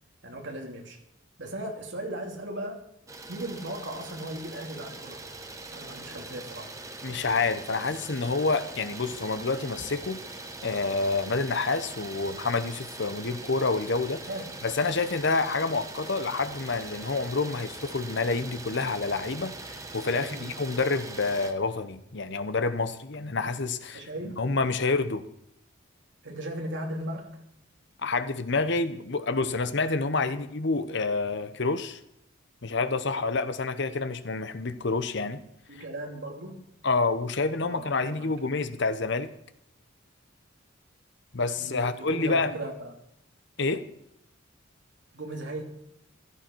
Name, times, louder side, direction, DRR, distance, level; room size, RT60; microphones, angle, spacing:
voice 1, 0.2-1.0 1.4-2.8 3.3-5.3 5.7-6.7 14.2-14.5 20.1-20.5 23.9-24.4 26.2-27.4 30.3-30.5 35.7-36.6 37.7-38.5 41.6-42.9 45.1-45.6, right 1 dB, 60° right, 1 dB, 2.8 m, -37 dB
Idling, 3.1-21.5, right 2 dB, 15° right, 1.2 m, -42 dB
voice 2, 7.0-10.2 10.6-14.2 14.6-24.0 24.4-25.2 28.0-32.0 32.6-35.4 35.7-35.8 36.8-39.3 41.3-42.6 43.6-43.8, left 3 dB, 60° left, 11 dB, 1.0 m, -28 dB
15.5 x 13.0 x 4.6 m, 0.79 s
head